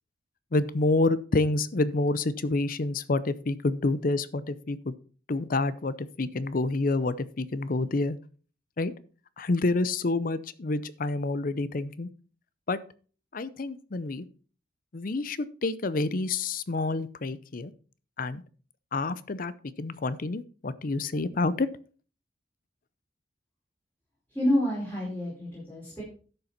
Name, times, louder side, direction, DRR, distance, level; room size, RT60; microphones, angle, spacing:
voice 1, 0.5-4.9 5.3-8.2 8.8-8.9 9.4-12.1 12.7-12.8 13.3-14.2 14.9-17.7 18.2-18.4 18.9-19.5 19.8-21.7, left 2 dB, 50° left, 16 dB, 0.6 m, -28 dB
voice 2, 24.3-26.0, left 1 dB, 10° left, -8 dB, 4.7 m, -28 dB
11.5 x 6.7 x 4.3 m, 0.40 s
head